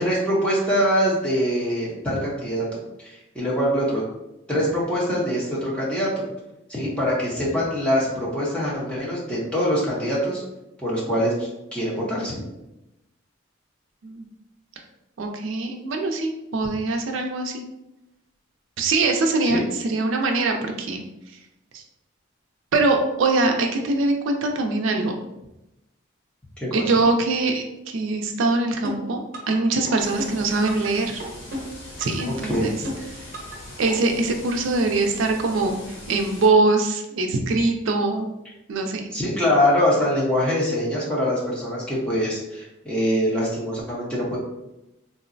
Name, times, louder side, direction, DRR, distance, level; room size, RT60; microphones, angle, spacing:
voice 1, 0.0-4.0 4.5-6.2 6.7-10.4 10.8-12.4 19.4-19.6 26.6-26.9 32.2-32.8 39.1-44.4, equal, 5° left, -7 dB, 0.8 m, -24 dB
voice 2, 15.2-17.6 18.8-21.0 21.7-21.8 22.7-25.1 26.7-31.2 32.0-32.8 33.8-35.8 36.1-38.3 38.7-39.1, right 3 dB, 80° right, 3 dB, 0.4 m, -23 dB
sound 1, 28.8-29.6 29.9-30.9 31.2-32.2 32.5-33.6 33.9-34.0, equal, 45° right, 0.8 m, -33 dB
sound 2, 30.0-36.5, left 1 dB, 75° left, 0.9 m, -41 dB
3.7 x 2.0 x 2.5 m, 0.91 s
head